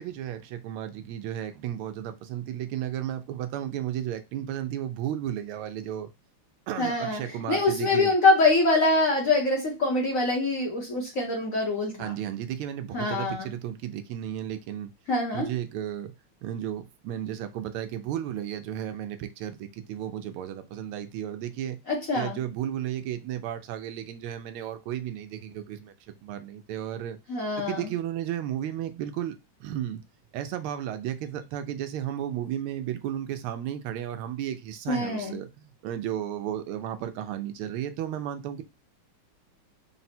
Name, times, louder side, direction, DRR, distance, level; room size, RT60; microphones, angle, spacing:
voice 1, 0.0-6.1 6.7-8.1 12.0-14.9 15.3-16.1 16.4-21.8 22.1-25.9 26.2-27.2 27.6-30.0 30.3-38.6, right 11 dB, 80° right, 9 dB, 1.4 m, -33 dB
voice 2, 6.8-12.1 12.9-13.5 15.1-15.5 21.9-22.4 27.3-27.9 34.9-35.4, left 2 dB, 55° left, -1 dB, 1.0 m, -24 dB
4.1 x 2.1 x 4.2 m, 0.25 s
omnidirectional pair, 2.3 m